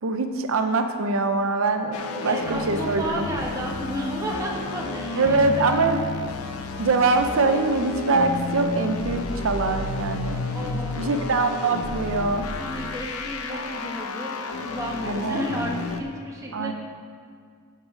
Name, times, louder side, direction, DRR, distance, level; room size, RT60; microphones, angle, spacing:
voice 1, 0.0-3.3 5.2-6.0 6.8-10.5 10.9-12.5 15.0-15.4 16.5-16.7, right 3 dB, 70° right, 6 dB, 0.5 m, -23 dB
sound 1, 1.9-16.0, left 3 dB, 90° left, 0.7 m, -31 dB
voice 2, 2.2-6.0 10.5-11.3 12.3-16.7, equal, 15° right, -2 dB, 1.3 m, -33 dB
11.0 x 5.5 x 4.9 m, 2.1 s
head